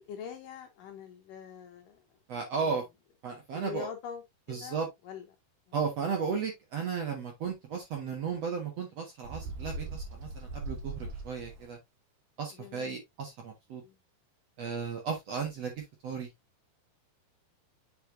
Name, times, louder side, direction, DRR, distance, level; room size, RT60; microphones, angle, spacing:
voice 1, 0.0-2.0 2.6-2.8 3.6-4.2 4.5-5.3 12.5-13.0 13.8-14.0, left 7 dB, 70° left, 2.2 m, -44 dB
voice 2, 2.3-2.8 3.2-3.9 4.5-4.9 5.7-11.8 12.4-13.8 14.6-16.3, right 5 dB, 55° right, 2.0 m, -35 dB
Bird, 9.2-11.7, right 3 dB, 75° right, 3.3 m, -40 dB
8.0 x 5.6 x 2.6 m
omnidirectional pair, 4.7 m